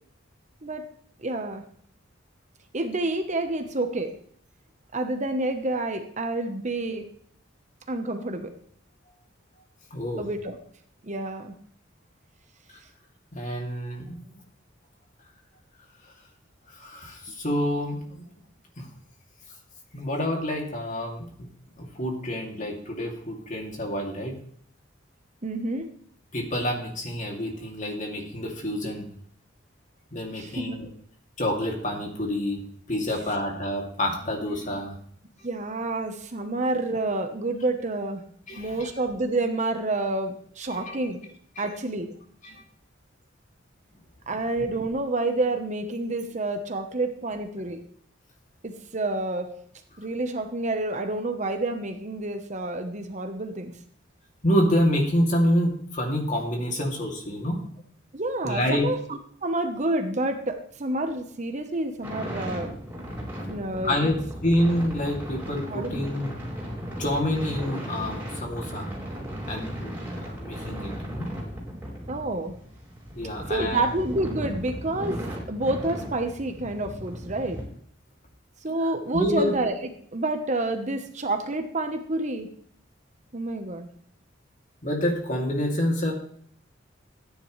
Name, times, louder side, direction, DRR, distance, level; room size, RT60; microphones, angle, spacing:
voice 1, 1.2-1.6 2.7-4.1 4.9-7.1 7.9-8.5 10.2-10.6 11.0-11.5 17.3-17.4 25.4-25.9 30.4-30.8 35.4-38.2 38.6-41.2 41.6-42.1 44.3-47.8 48.6-49.6 50.0-53.7 58.1-62.7 63.4-64.1 65.7-66.1 72.1-72.6 73.5-77.6 78.6-79.8 80.1-82.5 83.3-83.9, right 2 dB, 40° right, 6 dB, 1.1 m, -29 dB
voice 2, 9.9-10.2 13.3-14.4 16.7-18.3 18.8-18.9 19.9-21.5 21.8-24.4 26.3-29.1 30.1-30.9 31.4-32.6 32.9-35.0 38.5-38.9 40.7-41.0 41.6-41.7 42.4-42.6 54.4-57.6 58.4-58.9 63.8-66.3 67.0-68.9 69.4-71.3 73.1-73.8 79.1-79.5 84.8-86.1, left 1 dB, 40° left, 1 dB, 2.7 m, -27 dB
sound 1, 62.0-77.6, equal, 10° right, 4.7 m, -36 dB
15.0 x 9.9 x 3.3 m, 0.62 s
head